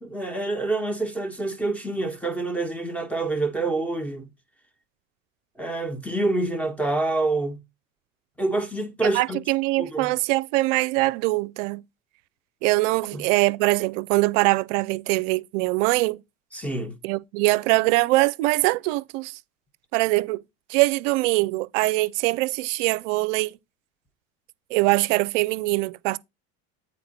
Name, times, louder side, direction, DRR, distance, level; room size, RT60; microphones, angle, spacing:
voice 1, 0.0-4.3 5.6-7.6 8.4-9.4 9.8-10.1 13.1-13.2 16.5-17.0, right 2 dB, 5° left, 1.4 m, -27 dB
voice 2, 9.1-11.8 12.6-16.2 17.0-19.4 19.9-20.4 20.7-23.5 24.7-26.2, right 21 dB, 70° right, 0.6 m, -23 dB
8.5 x 4.4 x 4.2 m
hypercardioid pair, 90°, 39 cm